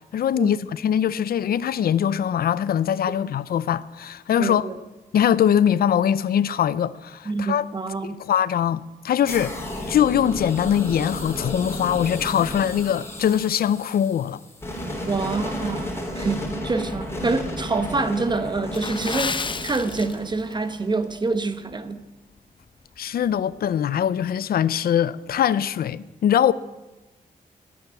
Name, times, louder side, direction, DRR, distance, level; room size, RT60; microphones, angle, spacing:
voice 1, 0.1-4.7 5.1-7.6 8.0-9.5 9.9-14.4 23.0-26.5, left 9 dB, 80° left, 0.5 m, -22 dB
voice 2, 4.4-4.8 7.3-8.2 15.1-22.0, right 3 dB, 30° right, 1.0 m, -26 dB
sound 1, 9.3-21.1, left 1 dB, 15° left, 3.4 m, -33 dB
Water / Splash splatter, 18.7-20.6 20.9-21.1 21.7-21.9 22.4-22.5, left 4 dB, 30° left, 0.7 m, -31 dB
13.5 x 10.0 x 9.4 m
wide cardioid pair, 135°, 15 cm